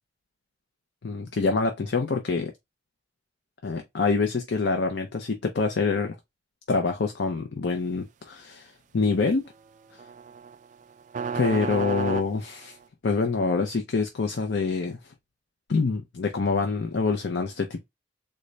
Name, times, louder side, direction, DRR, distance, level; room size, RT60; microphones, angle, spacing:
voice 1, 1.0-2.5 3.6-6.2 6.7-9.5 11.3-12.8 13.0-15.0 15.7-17.8, left 4 dB, 75° left, 0.6 m, -26 dB
sound 1, 10.0-12.8, right 6 dB, 45° right, 0.3 m, -32 dB
3.9 x 2.2 x 3.1 m
head